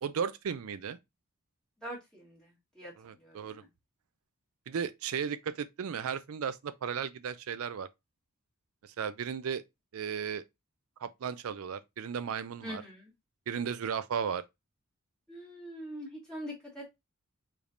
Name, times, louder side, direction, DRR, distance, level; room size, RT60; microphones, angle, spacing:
voice 1, 0.0-1.0 3.0-3.6 4.7-7.9 8.8-9.6 9.9-10.4 11.0-12.8 13.5-14.4, right 7 dB, 75° right, 0.4 m, -35 dB
voice 2, 1.8-2.9 3.2-3.7 12.6-13.1 15.3-16.9, equal, 5° left, 1.6 m, -43 dB
4.9 x 3.3 x 2.6 m
head